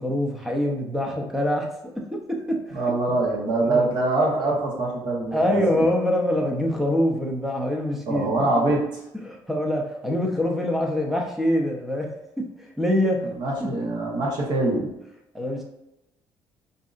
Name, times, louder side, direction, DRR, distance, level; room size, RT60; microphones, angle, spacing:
voice 1, 0.0-1.7 2.0-2.6 3.6-3.9 5.3-8.3 9.2-12.1 12.6-13.3 13.6-13.7 15.3-15.6, left 1 dB, ahead, 0 dB, 0.5 m, -24 dB
voice 2, 2.7-5.8 8.1-8.8 13.2-14.9, right 2 dB, 55° right, -1 dB, 1.0 m, -24 dB
5.2 x 2.7 x 2.4 m, 0.89 s
cardioid pair, 165°, 9 cm